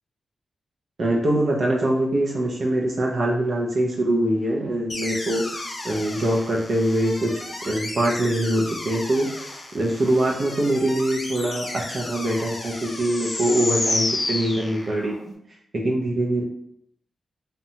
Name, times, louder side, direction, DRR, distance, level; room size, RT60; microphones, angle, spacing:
voice 1, 1.0-7.4 7.7-9.4 9.7-15.3 15.7-16.4, right 1 dB, 60° right, -2 dB, 0.4 m, -23 dB
sound 1, 4.9-15.2, left 2 dB, 40° left, 0.4 m, -31 dB
2.7 x 2.1 x 2.7 m, 0.75 s
cardioid pair, 90°, 0 cm